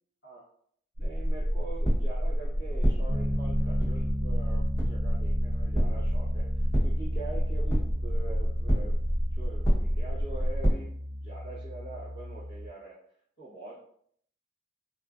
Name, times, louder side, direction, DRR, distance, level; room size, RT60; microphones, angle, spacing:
voice 1, 1.0-13.0 13.4-13.9, right 2 dB, 70° left, -8 dB, 1.0 m, -44 dB
sound 1, 1.0-10.7, equal, 15° left, 0.9 m, -27 dB
Piano, 3.1-12.7, left 1 dB, 35° right, 0.4 m, -35 dB
3.5 x 2.5 x 2.4 m, 0.64 s
head